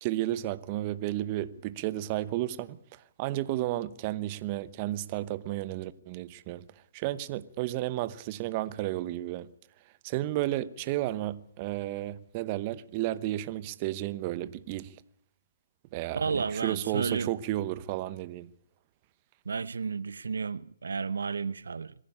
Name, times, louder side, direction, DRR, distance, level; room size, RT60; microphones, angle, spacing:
voice 1, 0.0-6.6 6.9-9.5 10.0-14.9 15.9-18.5, right 15 dB, 30° right, 0.9 m, -32 dB
voice 2, 16.1-17.3 19.5-21.9, right 5 dB, 80° right, 0.8 m, -32 dB
22.5 x 15.5 x 10.0 m
hypercardioid pair, 145°, 0 cm